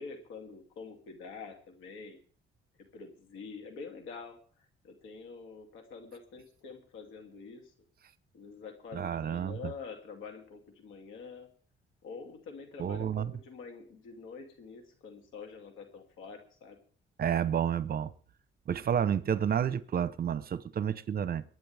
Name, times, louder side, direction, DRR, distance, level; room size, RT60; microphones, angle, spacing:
voice 1, 0.0-2.2 2.8-7.7 8.3-11.5 12.0-16.8, left 5 dB, 85° left, 2.7 m, -46 dB
voice 2, 8.9-9.6 12.8-13.3 17.2-18.1 18.7-21.4, right 8 dB, 50° right, 0.9 m, -30 dB
22.5 x 9.5 x 3.5 m
cardioid pair, 90°, 20 cm